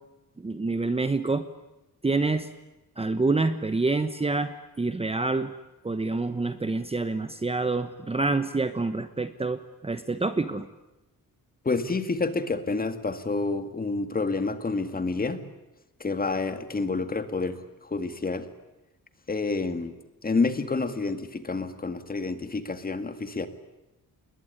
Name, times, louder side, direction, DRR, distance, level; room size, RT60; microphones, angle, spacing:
voice 1, 0.4-1.4 2.0-2.5 3.0-5.5 5.8-10.7, right 3 dB, 15° right, 11 dB, 1.1 m, -27 dB
voice 2, 11.6-15.4 16.0-18.5 19.3-19.9 20.2-23.5, left 3 dB, 25° left, 10 dB, 2.1 m, -28 dB
29.0 x 21.0 x 9.9 m, 0.99 s
wide cardioid pair, 145°, 35 cm